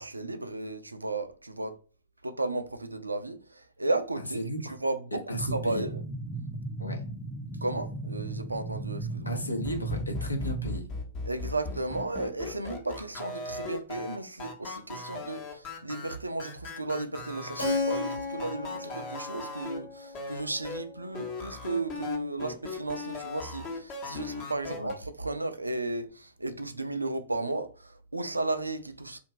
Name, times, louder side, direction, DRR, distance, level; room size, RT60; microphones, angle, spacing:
voice 1, 0.0-1.7 2.2-4.4 4.8-6.0 7.6-9.4 11.3-29.2, right 2 dB, 80° right, 0.3 m, -34 dB
voice 2, 4.2-4.7 5.3-5.9 6.8-7.0 9.3-10.9 24.7-24.9, equal, 80° left, 0.6 m, -34 dB
sound 1, 5.3-10.8, right 2 dB, 10° right, 0.4 m, -36 dB
sound 2, 9.6-19.8 20.1-20.8 21.1-24.9, left 3 dB, 30° left, 0.7 m, -38 dB
Keyboard (musical), 17.6-22.1, left 3 dB, 65° left, 1.0 m, -35 dB
2.5 x 2.2 x 2.7 m
figure-of-eight pair, 105°, 0 cm